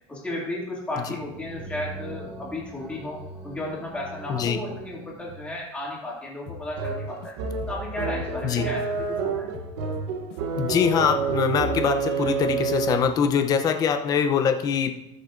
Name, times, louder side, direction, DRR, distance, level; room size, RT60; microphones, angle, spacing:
voice 1, 0.1-7.3 7.7-9.5, left 1 dB, 10° left, -5 dB, 2.6 m, -34 dB
sound 1, 1.0-5.6, right 1 dB, 15° right, 2.4 m, -42 dB
voice 2, 4.3-4.6 8.4-8.7 10.6-15.0, left 7 dB, 25° left, 7 dB, 0.7 m, -23 dB
sound 2, 6.5-7.3 7.6-10.4 10.7-11.9 12.2-12.6, left 6 dB, 65° left, 1.4 m, -43 dB
sound 3, 6.8-13.2, right 5 dB, 70° right, 1.1 m, -29 dB
19.0 x 6.5 x 2.6 m, 0.88 s
cardioid pair, 170°, 15 cm